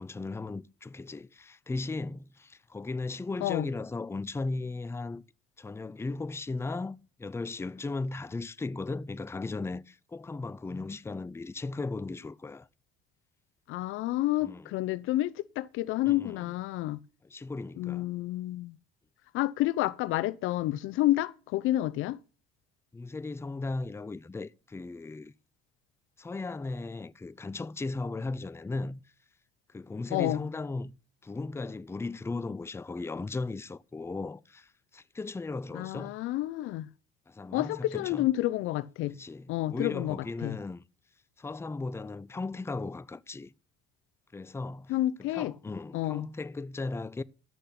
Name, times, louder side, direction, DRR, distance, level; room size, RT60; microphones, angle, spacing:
voice 1, 0.0-5.2 5.6-12.7 14.4-14.7 16.1-16.5 17.3-18.1 22.9-25.3 26.2-29.0 29.7-30.9 31.2-36.1 37.3-38.3 39.1-40.8 41.4-43.5 44.3-44.9 45.2-47.2, left 3 dB, 10° left, 0.5 m, -36 dB
voice 2, 13.7-17.0 17.8-18.8 19.3-22.2 30.1-30.4 35.7-36.9 37.5-39.1 39.5-40.2 40.4-40.6 44.9-45.5 45.9-46.3, left 15 dB, 75° left, 0.7 m, -29 dB
12.0 x 6.8 x 5.8 m
supercardioid pair, 85°, 21 cm